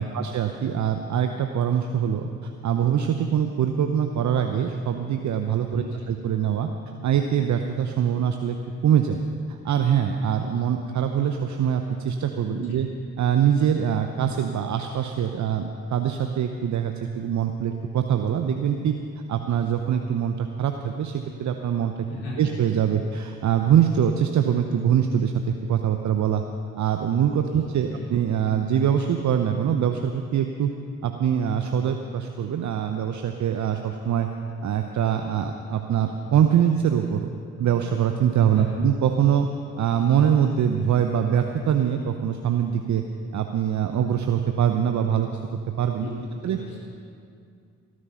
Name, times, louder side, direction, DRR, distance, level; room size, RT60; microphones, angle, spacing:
voice 1, 0.0-6.7 7.0-8.6 8.8-9.2 9.5-12.9 13.2-18.9 19.3-22.1 22.4-26.4 26.8-30.7 31.0-34.3 34.6-37.3 37.6-39.5 39.8-43.0 43.3-45.4 45.8-46.1 46.4-46.6, right 8 dB, 50° right, 6 dB, 0.8 m, -23 dB
voice 2, 5.7-6.0 12.5-12.8 22.1-22.5 27.4-28.0 38.5-38.8 46.0-46.8, left 1 dB, 70° left, -5 dB, 4.4 m, -38 dB
18.0 x 9.7 x 5.6 m, 2.4 s
hypercardioid pair, 40°, 36 cm